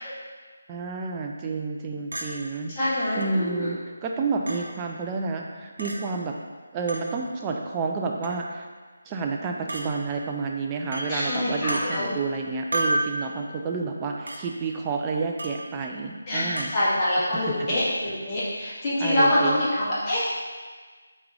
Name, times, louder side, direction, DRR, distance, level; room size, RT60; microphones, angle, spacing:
voice 1, 0.7-2.7 3.1-6.4 6.7-8.7 9.1-16.7 17.2-17.3 17.6-17.7 19.0-19.9, right 4 dB, 20° right, 1 dB, 0.4 m, -30 dB
Chink clink, 2.1-2.3 3.2-3.3 4.5-4.6 5.8-6.0 6.9-7.1 8.2-8.5 9.7-9.9 10.9-11.1 11.7-11.8 12.7-13.1 14.3-14.4 15.4-15.6 16.6-16.7, right 1 dB, 75° right, 0.7 m, -29 dB
voice 2, 2.7-3.7 11.1-12.1 16.3-20.3, left 1 dB, 25° left, -9 dB, 1.4 m, -25 dB
4.6 x 3.1 x 3.7 m, 1.5 s
figure-of-eight pair, 155°, 0 cm